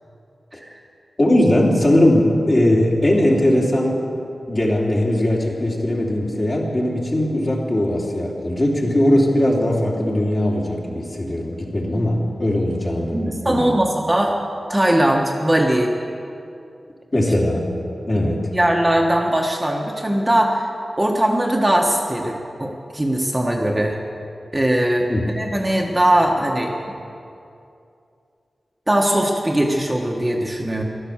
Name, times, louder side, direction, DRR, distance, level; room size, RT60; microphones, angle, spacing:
voice 1, 1.2-4.0 4.5-13.8 17.1-17.8 18.1-18.5 25.1-25.2, left 1 dB, 35° left, -3 dB, 3.1 m, -19 dB
voice 2, 13.1-14.4 14.7-15.9 18.1-20.7 21.0-24.0 24.5-26.7 28.9-30.8, right 1 dB, 15° right, 0 dB, 1.3 m, -20 dB
15.5 x 12.0 x 7.3 m, 2.6 s
wide cardioid pair, 110°, 0 cm